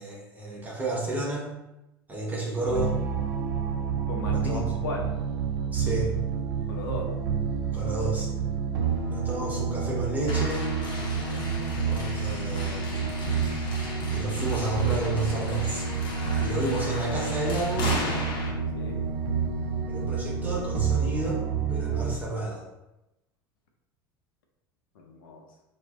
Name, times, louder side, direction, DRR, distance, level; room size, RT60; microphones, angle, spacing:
voice 1, 0.0-1.5 2.1-3.0 4.3-4.6 5.7-6.1 7.7-8.3 9.1-10.7 11.8-13.1 13.6-15.9 16.4-18.0 19.9-21.4 21.7-22.7, right 2 dB, 15° right, -4 dB, 0.9 m, -31 dB
sound 1, 2.7-22.1, right 6 dB, 55° right, 0.5 m, -29 dB
voice 2, 4.1-5.1 6.7-7.1 7.8-7.9 18.8-19.0 25.0-25.4, left 2 dB, 65° left, 1 dB, 0.5 m, -36 dB
sound 2, 10.3-18.5, left 2 dB, 40° left, 0.8 m, -36 dB
3.0 x 2.0 x 3.5 m, 0.94 s
figure-of-eight pair, 75°, 13 cm